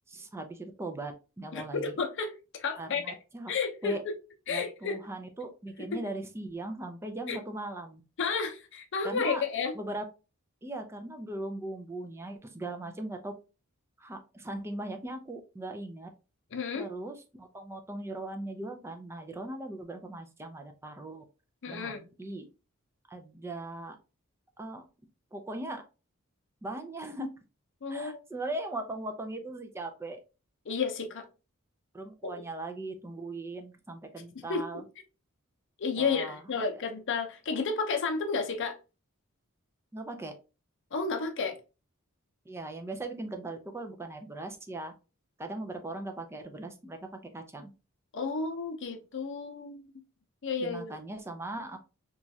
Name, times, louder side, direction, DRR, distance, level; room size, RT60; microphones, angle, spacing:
voice 1, 0.1-1.9 2.8-3.5 3.8-4.0 4.5-8.0 9.0-9.4 9.7-10.0 10.6-13.3 14.0-16.1 16.7-21.2 21.7-21.9 22.2-22.4 23.1-24.0 24.6-24.9 25.3-25.8 26.6-27.3 27.9-30.2 31.9-34.8 36.0-36.4 39.9-40.3 42.5-44.9 45.4-47.0 47.3-47.7 50.6-51.8, right 2 dB, 10° right, 5 dB, 0.4 m, -39 dB
voice 2, 1.5-3.2 3.5-4.1 4.5-5.0 5.9-6.0 7.3-7.4 8.2-9.8 16.5-16.9 21.6-22.0 27.8-28.2 30.7-31.2 32.2-32.4 34.3-34.8 35.8-38.8 40.9-41.6 48.1-49.9 50.4-50.9, left 4 dB, 60° left, 5 dB, 0.6 m, -32 dB
3.0 x 2.4 x 2.6 m, 0.32 s
head